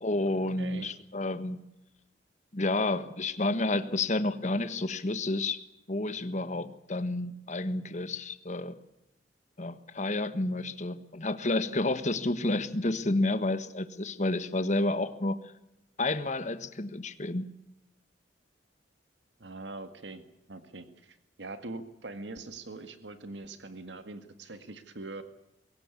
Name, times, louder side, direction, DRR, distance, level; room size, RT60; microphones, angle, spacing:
voice 1, 0.0-1.6 2.5-5.6 5.9-8.7 9.6-15.4 16.0-17.5, left 2 dB, 45° left, 11 dB, 1.4 m, -30 dB
voice 2, 19.4-20.2 20.5-25.2, right 2 dB, 90° right, 9 dB, 1.9 m, -42 dB
22.0 x 18.0 x 8.4 m, 0.87 s
head